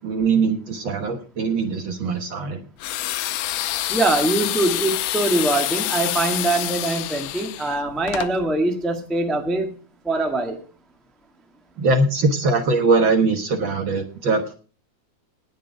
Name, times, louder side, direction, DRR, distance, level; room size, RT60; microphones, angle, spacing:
voice 1, 0.0-2.6 11.8-14.6, right 3 dB, 55° right, 6 dB, 1.5 m, -21 dB
sound 1, 2.8-8.3, left 14 dB, 90° left, 2.2 m, -27 dB
voice 2, 3.9-9.7 10.0-10.6, right 2 dB, ahead, 4 dB, 0.5 m, -23 dB
18.5 x 6.6 x 4.9 m, 0.38 s
omnidirectional pair, 3.5 m